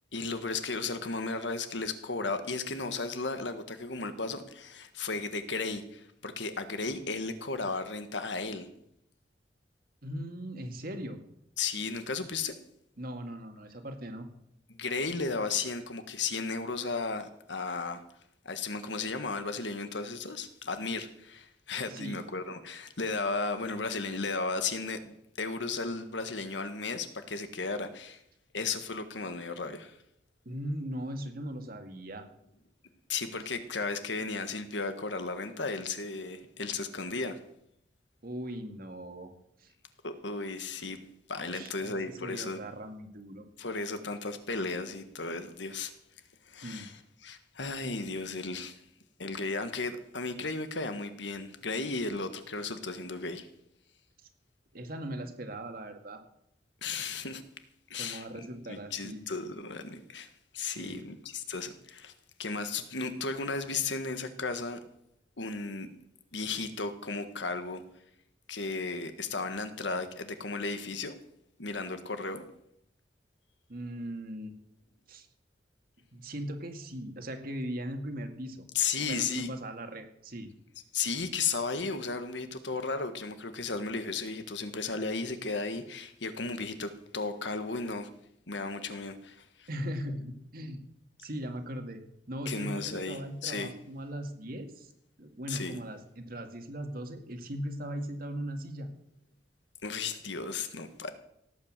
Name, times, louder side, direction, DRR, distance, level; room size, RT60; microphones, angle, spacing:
voice 1, 0.1-8.7 11.6-12.5 14.7-18.0 18.4-28.2 28.5-30.0 33.1-37.4 40.0-41.0 41.3-42.6 43.6-45.9 46.5-46.9 47.2-48.8 49.2-53.5 56.8-57.4 57.9-60.3 60.5-62.1 62.4-64.8 65.4-65.9 66.3-67.8 68.5-71.1 71.6-72.4 78.7-79.5 80.9-88.1 88.5-89.7 92.4-93.7 95.5-95.8 99.8-101.1, left 4 dB, 80° left, 9 dB, 1.6 m, -34 dB
voice 2, 10.0-11.2 13.0-14.3 21.9-22.2 30.5-32.3 38.2-39.3 39.6-39.7 41.4-43.4 46.6-46.9 54.7-56.2 57.9-59.2 60.6-61.1 73.7-74.5 75.1-75.3 76.1-78.6 79.1-80.5 89.7-90.8 91.2-92.0 92.3-94.9 95.2-98.9, equal, 55° right, 5 dB, 2.0 m, -39 dB
17.5 x 8.4 x 7.4 m, 0.77 s
head